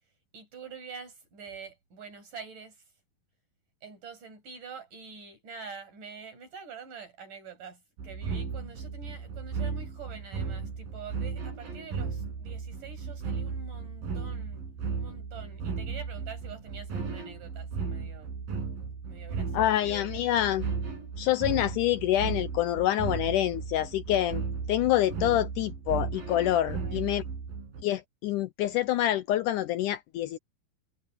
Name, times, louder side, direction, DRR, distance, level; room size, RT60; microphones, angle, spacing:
voice 1, 0.3-2.8 3.8-14.7 15.0-18.3 19.1-20.2 26.5-27.1, right 5 dB, 60° right, 9.5 m, -46 dB
sound 1, 8.0-27.8, right 5 dB, 80° right, 6.5 m, -35 dB
voice 2, 19.5-20.7 21.2-24.4 24.7-27.2 27.8-30.4, left 13 dB, 75° left, 2.0 m, -26 dB
omnidirectional pair, 4.1 m